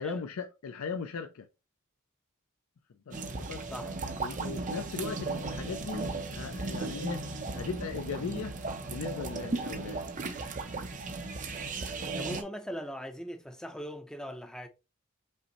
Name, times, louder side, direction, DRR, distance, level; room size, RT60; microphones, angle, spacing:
voice 1, 0.0-1.5 3.1-3.6 4.2-8.6 8.8-10.0, left 5 dB, 85° left, 0.5 m, -38 dB
sound 1, 3.1-12.4, right 3 dB, 40° right, 0.6 m, -36 dB
voice 2, 12.1-14.7, equal, 5° left, 0.6 m, -40 dB
5.4 x 2.1 x 4.0 m
head